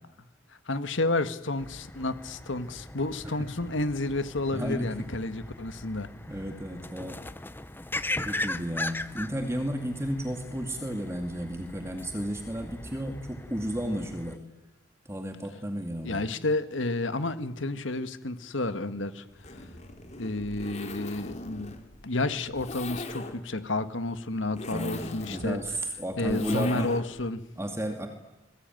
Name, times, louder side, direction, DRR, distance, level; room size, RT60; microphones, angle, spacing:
voice 1, 0.7-6.1 16.0-19.2 20.2-21.7 22.0-25.6 26.2-27.4, left 2 dB, 80° left, 11 dB, 1.8 m, -30 dB
sound 1, 1.6-14.4, left 2 dB, 10° left, 0.9 m, -39 dB
voice 2, 4.5-4.9 6.3-7.2 8.2-14.4 15.1-16.3 24.7-26.9 27.6-28.1, equal, 15° right, 5 dB, 2.3 m, -33 dB
Zipper (clothing), 19.3-27.3, left 2 dB, 35° left, 2.9 m, -41 dB
29.0 x 22.0 x 9.3 m, 1.0 s
head